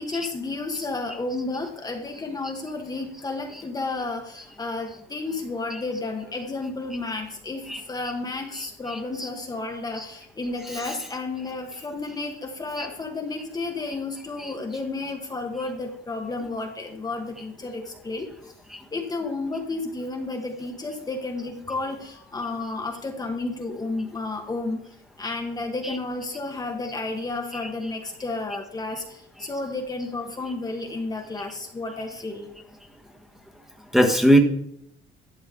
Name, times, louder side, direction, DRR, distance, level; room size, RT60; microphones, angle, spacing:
voice 1, 0.0-18.3 18.9-24.8 25.2-32.5, left 3 dB, 25° left, 3 dB, 1.2 m, -32 dB
voice 2, 8.9-9.3 10.0-10.1 10.6-10.9 12.8-12.9 25.8-26.0 33.9-34.4, equal, ahead, 3 dB, 1.3 m, -21 dB
11.5 x 7.2 x 3.7 m, 0.73 s
cardioid pair, 110°, 17 cm